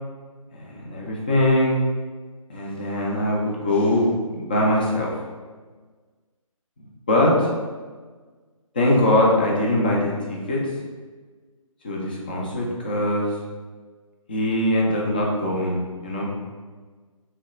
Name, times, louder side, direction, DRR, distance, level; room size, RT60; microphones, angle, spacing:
voice 1, 0.5-1.8 2.5-4.1 4.4-5.2 7.1-7.5 8.7-10.6 11.8-13.3 14.3-16.3, left 1 dB, 15° left, -3 dB, 0.3 m, -22 dB
3.1 x 2.7 x 3.8 m, 1.4 s
figure-of-eight pair, 145°, 18 cm